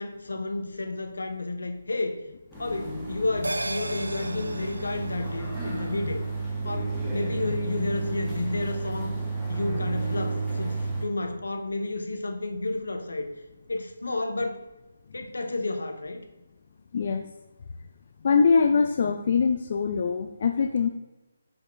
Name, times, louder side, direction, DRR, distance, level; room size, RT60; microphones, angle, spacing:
voice 1, 0.0-2.2 2.6-6.2 6.6-9.1 9.5-13.3 13.7-14.6 15.1-16.3, left 2 dB, 75° left, 6 dB, 0.9 m, -31 dB
sound 1, 2.5-11.0, right 3 dB, 5° left, 1.7 m, -32 dB
sound 2, 3.4-8.2 8.5-8.6, right 1 dB, 85° right, 0.4 m, -38 dB
voice 2, 16.9-17.2 18.2-20.9, left 5 dB, 50° left, 5 dB, 0.4 m, -23 dB
6.2 x 5.2 x 3.5 m, 1.1 s
figure-of-eight pair, 145°, 0 cm